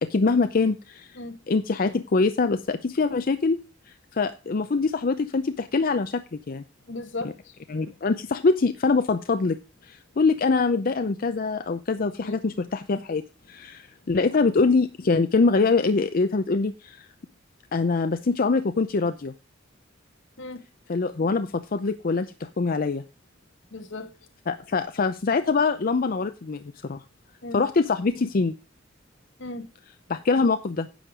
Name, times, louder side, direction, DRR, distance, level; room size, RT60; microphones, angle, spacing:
voice 1, 0.0-1.2 1.5-3.6 4.1-6.6 7.7-9.6 9.8-17.1 17.7-19.3 20.9-23.0 24.5-27.0 27.5-28.5 30.1-30.9, left 4 dB, 50° left, 0.5 m, -24 dB
voice 2, 6.9-7.5 12.2-12.3 20.4-20.7 23.7-24.1 27.4-27.6 29.4-29.7, left 2 dB, 70° left, 1.1 m, -36 dB
10.0 x 6.5 x 5.0 m
head